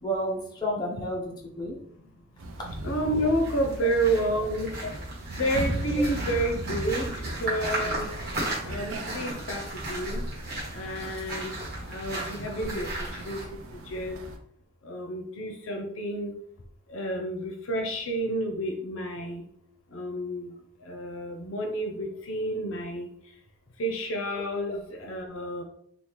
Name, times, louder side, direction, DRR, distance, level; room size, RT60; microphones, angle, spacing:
voice 1, 0.0-1.8 4.6-4.7 6.0-6.1 24.7-24.8, equal, 20° left, -3 dB, 0.8 m, -31 dB
sound 1, 2.4-14.4, right 1 dB, 85° right, 0.5 m, -37 dB
voice 2, 2.8-4.7 5.3-7.1 7.4-8.1 8.7-9.6 9.9-10.2 10.7-11.5 11.9-12.9 13.3-13.4 13.9-14.2 14.9-16.3 16.9-19.4 19.9-20.5 20.9-23.1 23.8-25.6, right 1 dB, 80° left, 4 dB, 0.6 m, -30 dB
sound 2, 3.3-13.4, right 1 dB, 50° right, 1.2 m, -36 dB
3.6 x 2.4 x 3.1 m, 0.66 s
head